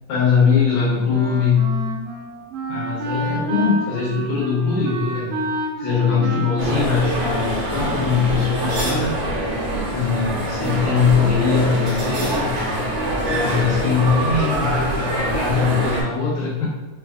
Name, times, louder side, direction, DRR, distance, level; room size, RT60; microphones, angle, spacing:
voice 1, 0.1-1.8 2.7-5.5 5.8-9.2 9.6-12.8 13.2-16.7, left 5 dB, 75° left, -7 dB, 2.6 m, -21 dB
Wind instrument woodwind instrument, 1.1-8.2, right 1 dB, 80° right, 1.6 m, -30 dB
sound 1, 6.6-16.0, right 1 dB, 60° right, 1.5 m, -24 dB
5.5 x 2.4 x 2.4 m, 1.3 s
omnidirectional pair, 3.4 m